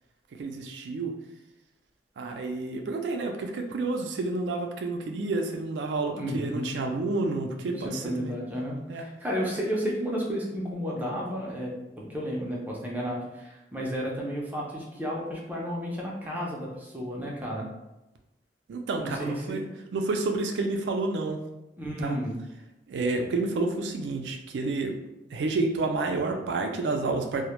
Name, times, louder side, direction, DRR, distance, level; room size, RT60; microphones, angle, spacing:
voice 1, 0.3-1.1 2.2-8.3 8.9-9.1 18.7-19.6 19.9-21.4 22.0-22.2 22.9-24.9 25.3-27.4, right 3 dB, 80° right, 3 dB, 0.3 m, -29 dB
voice 2, 6.1-6.7 7.8-11.7 12.0-17.7 19.0-19.6 21.8-22.4, equal, 10° right, -3 dB, 0.4 m, -32 dB
2.1 x 2.0 x 2.9 m, 0.96 s
head